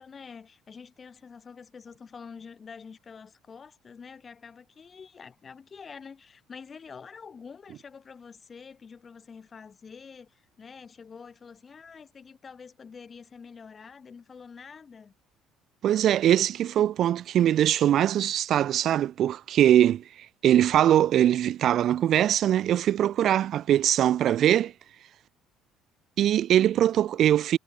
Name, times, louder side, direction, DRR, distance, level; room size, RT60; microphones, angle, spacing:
voice 1, 0.0-15.1, left 5 dB, 35° left, 6.4 m, -47 dB
voice 2, 15.8-24.7 26.2-27.6, right 11 dB, 60° right, 0.9 m, -22 dB
cardioid pair, 95°, 0 cm